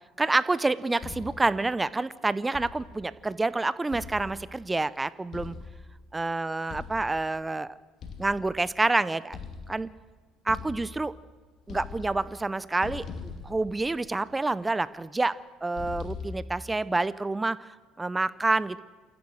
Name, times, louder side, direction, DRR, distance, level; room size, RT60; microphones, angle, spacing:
voice 1, 0.2-5.5 6.1-7.7 8.2-9.4 9.7-9.9 10.5-11.1 11.7-15.3 15.6-18.8, right 2 dB, 20° right, 17 dB, 0.7 m, -28 dB
sound 1, 1.0-1.6 2.5-3.1 3.9-4.7 5.3-6.1 6.7-7.3 8.0-8.8 9.3-10.0 10.5-11.3 11.6-12.5 12.8-14.3 15.8-16.7, left 5 dB, 55° left, 2.6 m, -41 dB
28.0 x 14.5 x 6.4 m, 1.3 s
hypercardioid pair, 60°, 0 cm